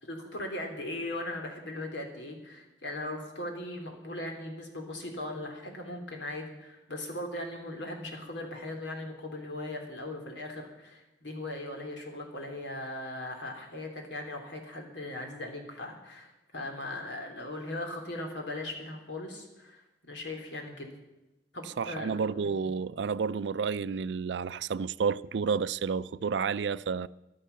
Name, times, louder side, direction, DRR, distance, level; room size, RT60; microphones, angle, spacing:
voice 1, 0.0-20.9 21.5-22.5, left 1 dB, 80° left, 3.3 m, -39 dB
voice 2, 21.8-27.1, right 5 dB, 75° right, 0.4 m, -30 dB
14.0 x 12.0 x 7.0 m
head